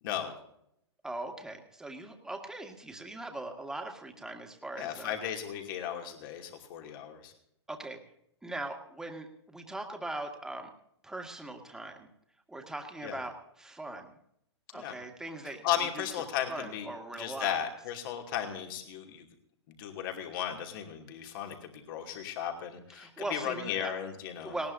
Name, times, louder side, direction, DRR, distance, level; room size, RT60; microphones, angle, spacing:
voice 1, 1.0-5.2 7.7-8.0 8.4-10.7 11.0-12.1 12.5-14.1 14.7-16.0 16.5-17.6 22.9-23.9 24.4-24.7, right 2 dB, 5° right, 2 dB, 2.0 m, -40 dB
voice 2, 4.8-7.3 13.0-13.2 14.7-14.9 15.6-16.9 17.1-19.2 19.7-24.6, left 10 dB, 50° left, 3 dB, 2.7 m, -35 dB
19.0 x 18.0 x 2.7 m, 0.75 s
hypercardioid pair, 120°, 14 cm